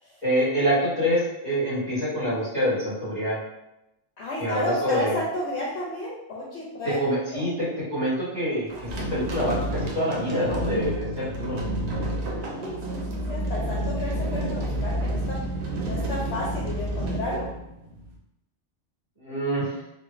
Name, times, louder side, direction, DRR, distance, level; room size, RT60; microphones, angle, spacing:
voice 1, 0.2-3.4 4.4-5.2 6.8-8.7 9.1-11.6 19.2-19.7, equal, 35° right, -9 dB, 1.6 m, -26 dB
voice 2, 4.2-7.0 7.3-7.4 12.3-15.4 15.8-17.5, left 1 dB, 75° left, -4 dB, 0.8 m, -32 dB
sound 1, 8.7-18.1, right 1 dB, 70° right, 0.9 m, -30 dB
2.9 x 2.3 x 2.4 m, 0.91 s
omnidirectional pair, 1.2 m